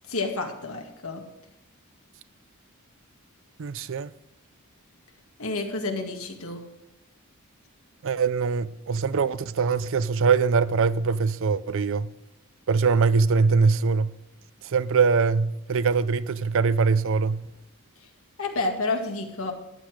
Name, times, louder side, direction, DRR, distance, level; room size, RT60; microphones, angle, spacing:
voice 1, 0.1-1.2 5.4-6.6 18.4-19.5, left 3 dB, 70° left, 2.1 m, -29 dB
voice 2, 3.6-4.1 8.0-12.1 12.7-14.1 14.7-17.4, right 5 dB, 60° right, 0.5 m, -22 dB
14.0 x 10.0 x 5.0 m
head